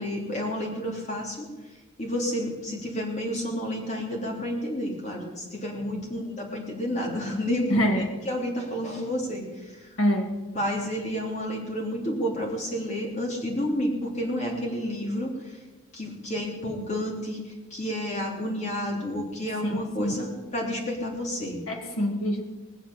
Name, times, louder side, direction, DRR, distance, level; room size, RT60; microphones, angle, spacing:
voice 1, 0.0-1.5 2.0-7.9 8.2-9.8 10.5-15.6 15.9-17.4 17.7-21.6, equal, 35° left, -1 dB, 3.3 m, -30 dB
voice 2, 7.7-8.2 10.0-10.4 19.6-20.1 21.7-22.4, equal, 80° left, 2 dB, 2.0 m, -25 dB
21.0 x 7.2 x 7.5 m, 1.2 s
head